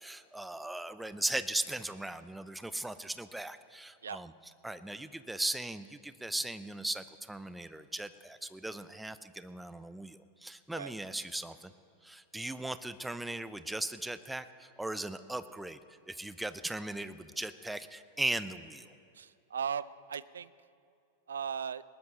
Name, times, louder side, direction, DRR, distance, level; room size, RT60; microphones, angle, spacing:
voice 1, 0.0-4.3 4.6-11.7 12.0-15.8 16.1-18.9, right 1 dB, 5° right, 13 dB, 0.5 m, -38 dB
voice 2, 19.1-20.5 21.3-21.8, right 7 dB, 70° right, 18 dB, 0.4 m, -37 dB
20.0 x 19.0 x 2.9 m, 2.5 s
figure-of-eight pair, 90°, 0 cm